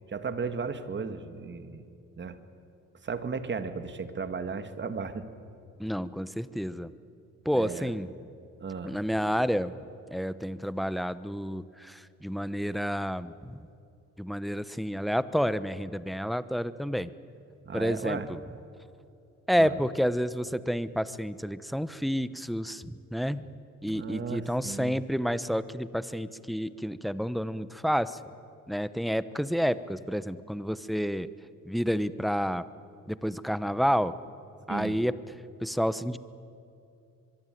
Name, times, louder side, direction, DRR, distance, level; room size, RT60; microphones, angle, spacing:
voice 1, 0.1-1.9 2.2-2.4 3.0-5.3 7.5-7.9 8.6-9.0 17.6-18.3 19.6-19.8 23.8-25.0 34.7-35.0, right 5 dB, 40° right, 10 dB, 2.0 m, -35 dB
voice 2, 5.8-6.9 7.4-8.1 8.8-9.7 10.1-13.7 14.2-17.1 17.7-18.4 19.5-23.5 23.8-28.2 28.7-31.3 31.7-32.6 33.1-34.2 34.7-35.2 35.6-36.2, equal, ahead, 15 dB, 0.9 m, -29 dB
24.0 x 23.0 x 9.2 m, 2.6 s
cardioid pair, 90°, 30 cm